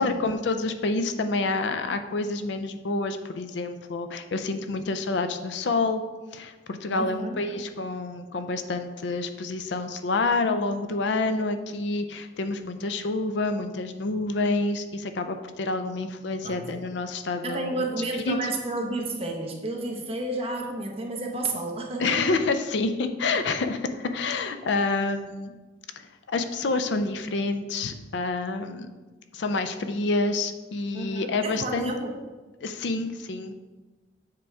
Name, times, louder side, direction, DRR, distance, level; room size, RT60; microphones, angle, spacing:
voice 1, 0.0-6.0 6.3-17.8 18.1-18.4 22.0-25.5 26.0-28.9 29.3-31.9 32.6-33.6, left 3 dB, 65° left, 8 dB, 0.5 m, -28 dB
voice 2, 6.9-7.4 16.4-16.6 17.4-22.2 30.9-32.1, right 2 dB, 30° right, 1 dB, 0.9 m, -31 dB
7.7 x 4.5 x 3.6 m, 1.2 s
head